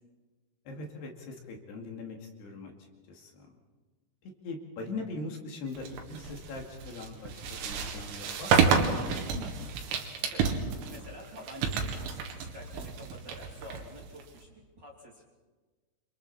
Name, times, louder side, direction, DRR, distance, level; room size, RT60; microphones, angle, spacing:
voice 1, 0.7-3.5 4.2-9.7, left 3 dB, 65° left, 1 dB, 4.1 m, -41 dB
sound 1, 5.8-14.4, right 6 dB, 80° right, 4.5 m, -30 dB
voice 2, 10.9-15.2, equal, 25° right, -4 dB, 2.9 m, -48 dB
28.0 x 27.0 x 4.3 m, 1.3 s
omnidirectional pair, 5.5 m